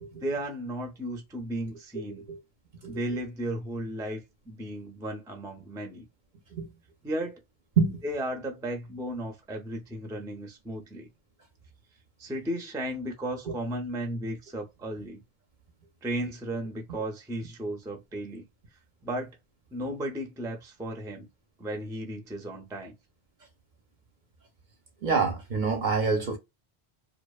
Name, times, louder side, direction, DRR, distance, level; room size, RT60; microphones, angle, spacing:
voice 1, 0.1-2.3 2.9-6.1 7.0-7.4 8.0-11.1 12.2-15.2 16.0-18.4 19.0-19.4 19.7-21.3 21.6-22.9, right 1 dB, 5° right, 0.3 m, -35 dB
voice 2, 25.0-26.4, right 5 dB, 55° right, 0.6 m, -26 dB
2.6 x 2.1 x 2.3 m
omnidirectional pair, 1.1 m